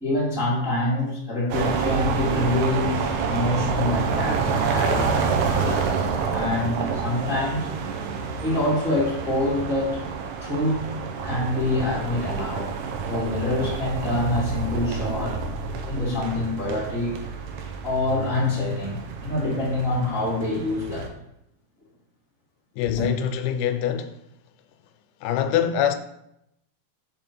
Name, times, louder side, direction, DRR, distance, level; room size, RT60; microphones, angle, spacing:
voice 1, 0.0-7.7 8.4-10.0 10.4-10.9 11.2-12.7 13.1-15.4 15.8-17.2 17.8-21.1 22.9-23.1, left 1 dB, ahead, 0.7 m, -26 dB
sound 1, 1.5-21.1, right 5 dB, 80° right, 1.9 m, -28 dB
voice 2, 22.8-24.2 25.2-26.0, left 9 dB, 85° left, 2.5 m, -24 dB
5.4 x 5.1 x 6.0 m
omnidirectional pair, 4.7 m